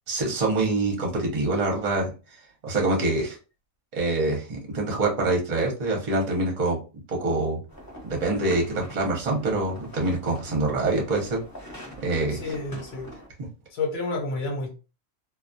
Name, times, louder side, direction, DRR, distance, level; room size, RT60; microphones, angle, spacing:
voice 1, 0.1-2.1 2.6-3.4 3.9-6.8 7.1-7.6 8.0-11.4 12.0-12.4, right 2 dB, 40° right, 0 dB, 0.7 m, -25 dB
footsteps snow crunchy close, 7.7-13.3, equal, 20° left, 0.8 m, -43 dB
voice 2, 12.3-13.1 13.7-14.7, left 3 dB, 85° left, 0 dB, 1.1 m, -30 dB
2.2 x 2.2 x 2.5 m, 0.33 s
omnidirectional pair, 1.4 m